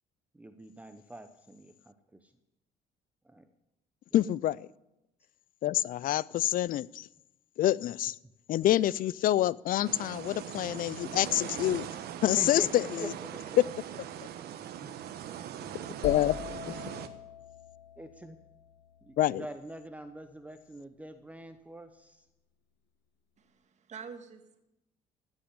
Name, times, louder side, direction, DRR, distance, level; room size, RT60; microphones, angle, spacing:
voice 1, 0.3-2.3 3.2-3.5 12.4-13.4 14.6-15.0 15.5-16.3 16.6-17.1 18.0-18.4 19.0-22.3, right 1 dB, 10° right, 8 dB, 0.9 m, -45 dB
voice 2, 4.1-4.7 5.6-7.1 7.6-8.2 8.5-11.9 12.2-13.1 13.6-13.7 16.0-16.3 16.8-16.9 19.2-19.4, left 13 dB, 55° left, 22 dB, 0.4 m, -27 dB
sound 1, 9.8-17.1, right 10 dB, 70° right, 1.2 m, -41 dB
sound 2, 16.0-19.8, left 11 dB, 80° left, 1.1 m, -43 dB
voice 3, 23.4-24.6, right 6 dB, 45° right, 7 dB, 1.8 m, -47 dB
16.0 x 6.1 x 9.9 m, 0.90 s
cardioid pair, 110°, 17 cm